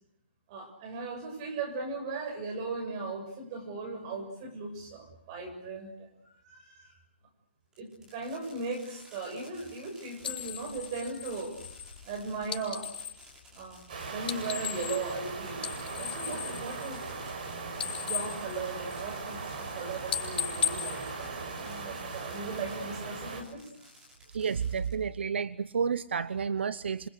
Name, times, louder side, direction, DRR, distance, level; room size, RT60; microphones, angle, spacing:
voice 1, 0.5-6.9 7.8-11.6 12.0-12.9 13.5-17.0 18.0-23.6, right 3 dB, 25° right, 4 dB, 7.0 m, -38 dB
Fireworks, 7.7-22.9 23.3-25.2, equal, 10° right, 6.4 m, -56 dB
sound 1, 10.2-13.2 14.1-15.3 15.5-17.4 17.7-19.2 19.6-19.8 20.1-21.9, left 8 dB, 55° left, 6.8 m, -36 dB
sound 2, 13.9-23.4, right 4 dB, 50° right, 6.5 m, -39 dB
voice 2, 24.3-27.1, right 6 dB, 70° right, 14 dB, 0.9 m, -30 dB
27.0 x 24.5 x 6.6 m, 0.78 s
hypercardioid pair, 170°, 6 cm